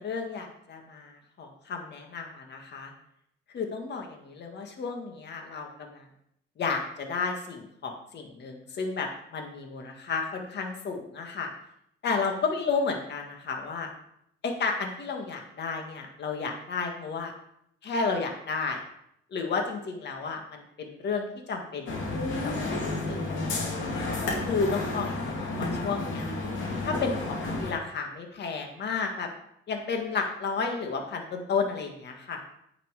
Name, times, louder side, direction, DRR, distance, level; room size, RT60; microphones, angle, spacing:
voice 1, 0.0-2.9 3.5-6.1 6.6-11.5 12.0-13.9 14.4-17.3 17.8-18.8 19.3-21.8 22.1-23.9 24.5-26.3 26.8-29.3 29.7-32.4, left 4 dB, 60° left, 3 dB, 1.8 m, -32 dB
sound 1, 21.9-27.7, left 2 dB, 75° left, 2.9 m, -31 dB
9.2 x 6.0 x 4.8 m, 0.73 s
cardioid pair, 90°, 20 cm